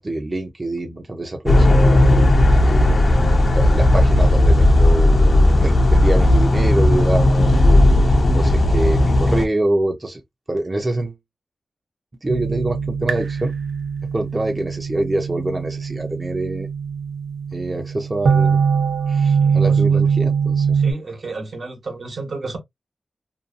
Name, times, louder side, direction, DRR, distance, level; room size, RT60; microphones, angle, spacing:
voice 1, 0.0-2.0 2.6-3.1 3.5-10.2 10.5-11.1 12.2-13.5 14.1-16.7 17.5-18.6 19.1-20.8, right 1 dB, 30° right, 0.5 m, -25 dB
sound 1, 1.5-9.5, left 1 dB, 55° left, 0.4 m, -14 dB
sound 2, 12.3-20.9, right 6 dB, 90° right, 0.5 m, -21 dB
voice 2, 19.2-20.0 20.8-22.6, right 3 dB, 70° right, 1.0 m, -32 dB
2.6 x 2.3 x 2.4 m
wide cardioid pair, 75°, 0 cm